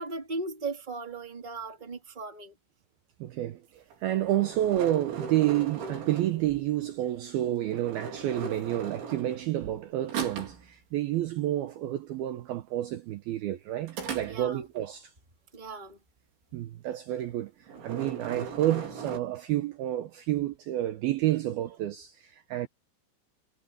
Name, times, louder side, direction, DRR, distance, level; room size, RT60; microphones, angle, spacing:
voice 1, 0.0-2.5 14.2-14.7 15.5-16.0, right 3 dB, 15° right, 2.0 m, -37 dB
voice 2, 3.2-15.1 16.5-22.7, right 13 dB, 85° right, 2.1 m, -30 dB
sound 1, 3.9-6.7 7.7-9.8 10.1-10.7 13.9-14.8 17.1-17.4 17.7-19.2, right 6 dB, 70° right, 6.7 m, -38 dB
omnidirectional pair, 5.8 m